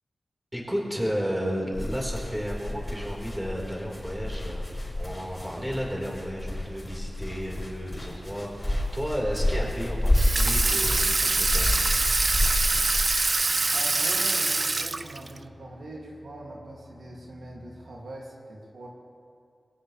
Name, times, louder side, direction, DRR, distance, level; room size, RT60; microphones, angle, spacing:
voice 1, 0.5-4.7 5.0-11.7, equal, 5° right, -3 dB, 4.4 m, -33 dB
sound 1, 0.6-18.0, left 2 dB, 80° left, 2.0 m, -55 dB
sound 2, 1.7-13.0, left 1 dB, 25° left, 4.7 m, -29 dB
Water tap faucet / Sink (filling or washing), 10.1-15.4, right 3 dB, 45° right, 0.4 m, -25 dB
voice 2, 13.7-18.9, right 1 dB, 90° right, -3 dB, 2.5 m, -42 dB
23.5 x 17.0 x 3.4 m, 2.4 s
wide cardioid pair, 65°, 0 cm